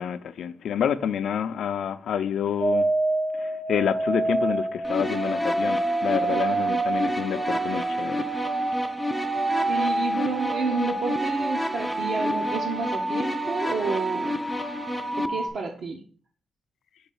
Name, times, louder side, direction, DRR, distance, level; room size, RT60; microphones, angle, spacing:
voice 1, 0.0-2.9 3.4-8.3, left 8 dB, 80° left, 0.4 m, -28 dB
sound 1, 2.6-15.5, right 2 dB, 35° right, 1.0 m, -28 dB
sound 2, 4.8-15.3, left 2 dB, 5° left, 0.3 m, -31 dB
voice 2, 9.7-14.4 15.2-16.0, right 4 dB, 55° right, 0.7 m, -30 dB
5.0 x 3.9 x 5.5 m
wide cardioid pair, 170°, 0 cm